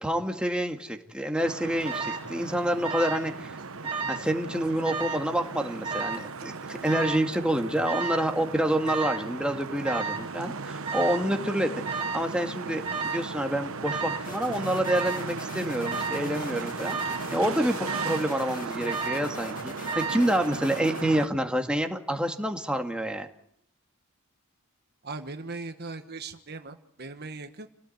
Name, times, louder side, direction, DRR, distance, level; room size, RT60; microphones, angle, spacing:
voice 1, 0.0-3.6 4.1-23.3, right 1 dB, 5° right, 4 dB, 2.2 m, -28 dB
sound 1, 1.4-21.3, right 4 dB, 65° right, 1.0 m, -37 dB
Alarm, 1.8-2.3 2.8-3.3 3.6-4.3 4.8-5.3 5.8-6.3 6.9-7.3 7.9-8.3 8.9-9.3 9.9-10.3 10.9-11.3 11.9-12.3 12.8-13.3 13.8-14.3 14.8-15.3 15.8-16.3 16.8-17.3 17.9-18.3 18.9-19.3 19.9-20.3, right 4 dB, 25° right, 2.9 m, -32 dB
sound 2, 14.2-21.0, left 4 dB, 40° left, 2.2 m, -45 dB
voice 2, 25.0-27.7, right 3 dB, 45° right, 8 dB, 1.4 m, -39 dB
29.0 x 18.0 x 9.5 m, 0.71 s
head